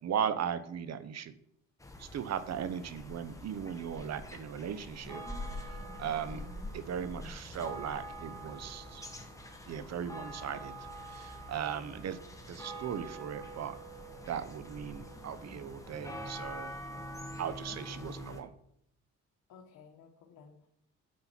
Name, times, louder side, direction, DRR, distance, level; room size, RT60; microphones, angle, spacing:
voice 1, 0.0-1.3 2.0-5.2 6.0-6.5 6.7-9.1 9.7-10.7 11.1-12.2 12.5-13.7 14.3-16.7 17.4-18.5, right 8 dB, 60° right, 13 dB, 1.0 m, -37 dB
sound 1, 1.8-18.4, equal, 10° left, 1.6 m, -45 dB
voice 2, 11.6-12.0 17.7-18.2 19.5-20.7, left 7 dB, 80° left, 0 dB, 1.4 m, -56 dB
9.7 x 7.6 x 4.5 m, 0.72 s
cardioid pair, 90°, 30 cm